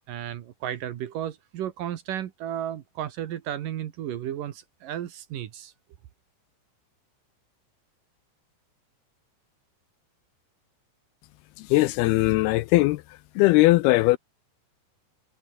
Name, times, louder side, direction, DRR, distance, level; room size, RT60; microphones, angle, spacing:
voice 1, 0.1-5.7, right 11 dB, 65° right, 2.7 m, -33 dB
voice 2, 11.6-13.0 13.4-14.2, left 19 dB, 80° left, 2.4 m, -20 dB
omnidirectional pair, 4.8 m